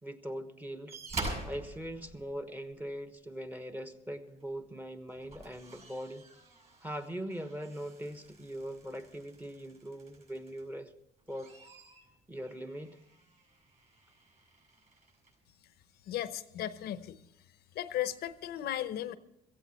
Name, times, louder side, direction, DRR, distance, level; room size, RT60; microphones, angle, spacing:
voice 1, 0.0-1.0 1.4-6.3 6.8-10.9 11.3-11.5 12.3-13.0, equal, 10° right, 9 dB, 1.2 m, -41 dB
sound 1, 0.9-2.9 4.4-4.6 5.0-10.8 11.2-15.4 16.3-16.4, right 2 dB, 40° right, 6.6 m, -46 dB
voice 2, 16.1-17.2 17.7-19.2, left 12 dB, 70° left, 13 dB, 0.8 m, -36 dB
16.5 x 15.0 x 4.3 m, 0.82 s
cardioid pair, 110°, 17 cm